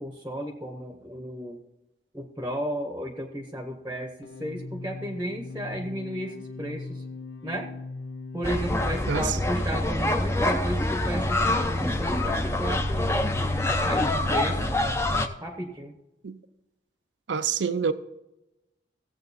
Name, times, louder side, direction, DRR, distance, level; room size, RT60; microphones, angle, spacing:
voice 1, 0.0-1.6 2.1-7.0 7.4-7.7 8.3-13.2 13.8-14.7 15.4-15.9, equal, 15° right, 0.9 m, -34 dB
sound 1, 4.2-9.9, left 3 dB, 80° left, 0.7 m, -40 dB
sound 2, 8.4-15.3, left 1 dB, 15° left, 0.6 m, -25 dB
voice 2, 9.1-9.4 16.2-16.4 17.3-17.9, right 6 dB, 85° right, 0.5 m, -26 dB
16.5 x 7.7 x 4.1 m
head